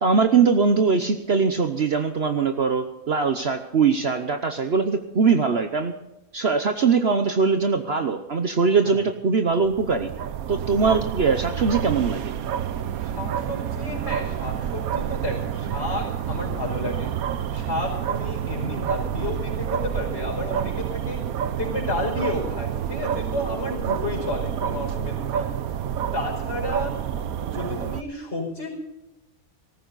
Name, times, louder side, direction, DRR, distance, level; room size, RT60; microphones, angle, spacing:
voice 1, 0.0-5.9 6.3-10.1 10.5-12.3, right 5 dB, 50° right, 7 dB, 1.1 m, -21 dB
sound 1, 9.5-28.0, right 9 dB, 85° right, 1.3 m, -28 dB
voice 2, 13.0-17.1 17.5-21.2 21.6-25.5 26.1-26.9 27.5-28.7, left 2 dB, 45° left, 1 dB, 5.5 m, -31 dB
18.5 x 14.5 x 4.1 m, 0.98 s
omnidirectional pair, 1.5 m